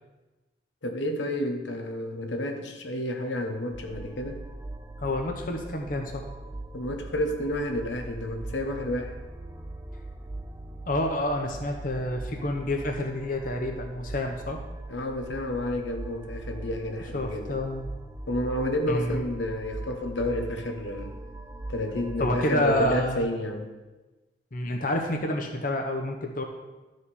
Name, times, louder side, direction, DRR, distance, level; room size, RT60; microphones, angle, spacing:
voice 1, 0.8-4.4 6.7-9.2 14.9-17.6 18.3-21.2 21.7-23.7, left 1 dB, 85° left, 4 dB, 1.0 m, -30 dB
sound 1, 3.7-23.2, right 1 dB, 15° right, 0.4 m, -40 dB
voice 2, 5.0-6.2 10.9-14.6 17.1-17.9 18.9-19.3 22.2-23.3 24.5-26.4, left 1 dB, 50° left, 2 dB, 0.8 m, -28 dB
13.0 x 4.9 x 4.2 m, 1.2 s
head